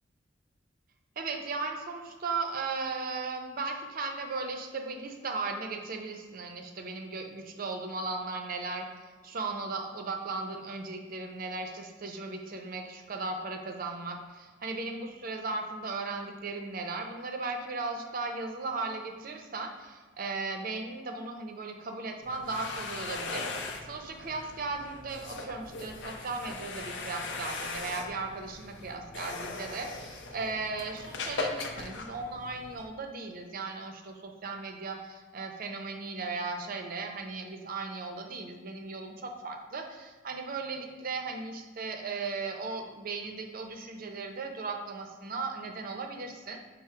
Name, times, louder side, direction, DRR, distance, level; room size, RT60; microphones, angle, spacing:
voice 1, 1.2-46.6, right 3 dB, 50° right, 4 dB, 0.5 m, -37 dB
sound 1, 22.2-32.9, left 3 dB, 70° left, 0.5 m, -39 dB
5.8 x 2.0 x 4.3 m, 1.3 s
head